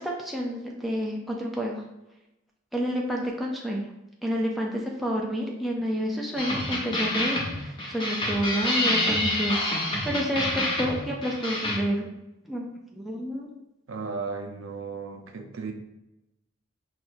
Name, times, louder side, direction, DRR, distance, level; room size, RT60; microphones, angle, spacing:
voice 1, 0.0-1.8 2.7-3.9 4.2-12.1 12.5-12.7 13.0-13.5, equal, ahead, -2 dB, 0.3 m, -29 dB
sound 1, 6.4-11.8, left 1 dB, 25° left, 0.7 m, -28 dB
voice 2, 13.9-15.7, right 4 dB, 70° right, 5 dB, 0.5 m, -35 dB
6.0 x 2.4 x 2.5 m, 0.93 s
head